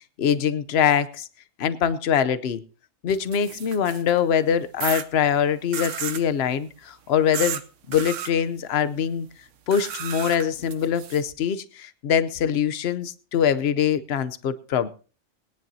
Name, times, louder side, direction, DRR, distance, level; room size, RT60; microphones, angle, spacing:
voice 1, 0.2-1.3 1.6-2.6 3.0-7.6 7.9-9.3 9.7-14.9, left 8 dB, 60° left, 1.0 m, -23 dB
sound 1, 3.1-4.2 4.8-5.1 5.7-6.3 7.3-7.6 7.9-8.3 9.7-11.2, right 8 dB, 75° right, 1.2 m, -32 dB
21.0 x 10.5 x 2.7 m
omnidirectional pair, 1.3 m